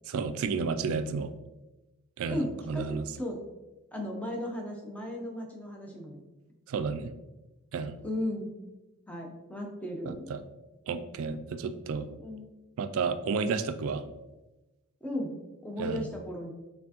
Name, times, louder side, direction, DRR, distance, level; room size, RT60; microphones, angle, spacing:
voice 1, 0.1-1.3 2.2-3.0 6.7-7.1 7.7-8.0 10.1-10.4 10.9-12.1 12.8-14.0 15.8-16.0, right 5 dB, 65° right, 11 dB, 0.3 m, -31 dB
voice 2, 2.3-3.4 3.9-6.2 8.0-8.5 9.1-10.3 12.2-12.5 15.0-15.4 15.6-16.5, left 1 dB, 5° left, 0 dB, 0.6 m, -35 dB
4.4 x 3.4 x 2.8 m, 1.1 s
head